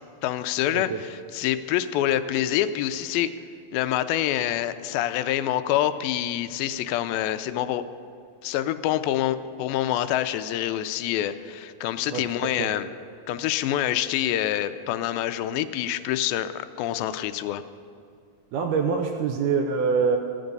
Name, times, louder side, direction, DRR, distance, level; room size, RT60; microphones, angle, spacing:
voice 1, 0.2-3.3 3.7-7.8 8.4-12.9 13.3-16.5 16.8-17.6, left 12 dB, 90° left, 11 dB, 2.4 m, -26 dB
voice 2, 18.5-20.2, right 5 dB, 75° right, 3 dB, 1.9 m, -24 dB
14.5 x 10.0 x 5.3 m, 2.4 s
omnidirectional pair, 4.1 m